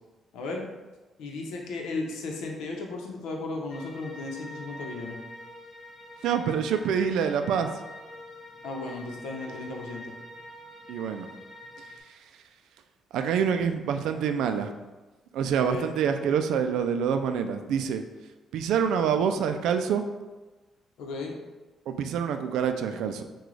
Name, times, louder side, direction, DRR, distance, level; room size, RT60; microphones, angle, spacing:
voice 1, 0.3-0.7 1.2-5.2 8.6-10.1 15.6-16.0 21.0-21.3, left 3 dB, 90° left, 1 dB, 0.7 m, -35 dB
sound 1, 3.7-12.0, left 1 dB, 30° left, 0.8 m, -45 dB
voice 2, 6.2-7.7 10.9-11.3 13.1-14.7 15.3-18.0 18.5-20.0 21.9-23.2, right 7 dB, 85° right, 8 dB, 0.3 m, -26 dB
6.0 x 2.3 x 3.2 m, 1.2 s
cardioid pair, 90°, 0 cm